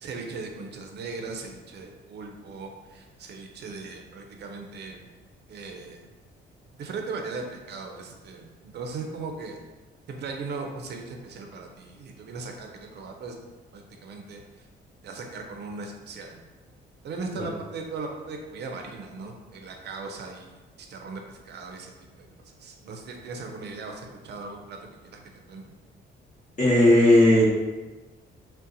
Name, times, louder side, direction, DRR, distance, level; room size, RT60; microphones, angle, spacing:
voice 1, 0.0-5.0 5.5-6.0 6.7-9.6 10.1-13.3 13.7-14.7 15.0-16.4 17.0-25.2 25.5-25.6, right 4 dB, 60° right, 3 dB, 0.5 m, -38 dB
voice 2, 26.6-27.4, left 1 dB, 40° left, -5 dB, 0.9 m, -17 dB
2.7 x 2.0 x 3.8 m, 1.2 s
cardioid pair, 90°, 20 cm